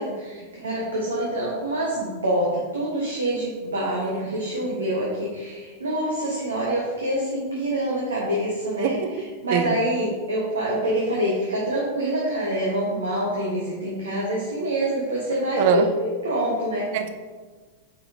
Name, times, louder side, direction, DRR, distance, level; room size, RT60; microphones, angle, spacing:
voice 1, 0.0-16.9, right 1 dB, 75° right, -4 dB, 1.2 m, -26 dB
voice 2, 8.8-9.1 9.5-9.7 15.6-15.9 16.9-17.1, right 8 dB, 50° right, 9 dB, 0.5 m, -22 dB
8.7 x 4.2 x 2.7 m, 1.4 s
figure-of-eight pair, 90°, 0 cm